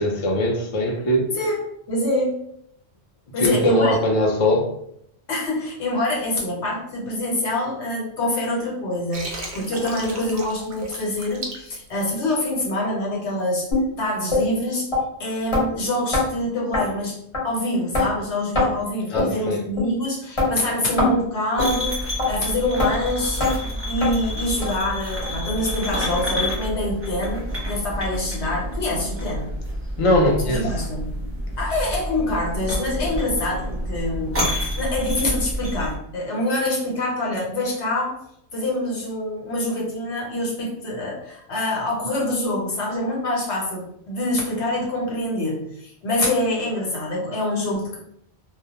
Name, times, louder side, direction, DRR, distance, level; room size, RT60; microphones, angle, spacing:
voice 1, 0.0-1.3 3.4-4.7 19.1-19.6 30.0-30.7, left 1 dB, 45° left, -1 dB, 0.4 m, -20 dB
voice 2, 1.3-1.6 1.9-2.3 3.3-4.0 5.3-13.7 14.0-14.9 15.2-17.2 17.4-23.6 23.9-29.5 30.5-31.1 31.6-38.2 38.5-48.0, left 1 dB, 85° left, -3 dB, 1.1 m, -25 dB
Water, 9.1-12.6, right 2 dB, 55° right, 0.6 m, -35 dB
sound 1, 13.7-13.9 14.3-14.4 14.9-15.0 15.5-15.7 16.1-16.3 16.7-16.8 17.3-17.4 17.9-18.1 18.6-18.7 19.2-19.3 19.8-19.9 20.4-20.5 21.0-21.2 21.6-21.7 22.2-22.3 22.8-22.9 23.4-23.5 24.0-24.1 24.6-24.7 25.2-25.3 25.8-25.9 26.4-26.5, left 2 dB, 30° left, 0.9 m, -21 dB
sound 2, 21.6-36.0, equal, 15° right, 0.7 m, -29 dB
2.2 x 2.1 x 2.8 m, 0.72 s
omnidirectional pair, 1.1 m